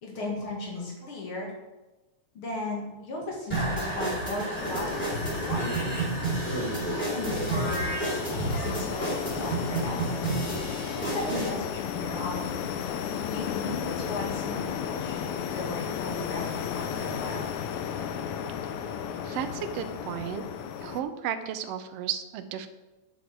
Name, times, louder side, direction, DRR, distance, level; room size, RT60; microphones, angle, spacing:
voice 1, 0.0-1.5 2.3-6.0 6.9-10.0 11.0-12.6 13.3-17.5, left 2 dB, 50° left, -2 dB, 2.8 m, -36 dB
sound 1, 3.5-11.5, right 2 dB, 5° left, 2.9 m, -31 dB
sound 2, 4.6-21.0, left 8 dB, 80° left, 1.9 m, -34 dB
voice 2, 19.2-20.4 20.8-22.7, right 9 dB, 75° right, 9 dB, 1.4 m, -33 dB
8.0 x 7.4 x 4.6 m, 1.1 s
omnidirectional pair, 3.4 m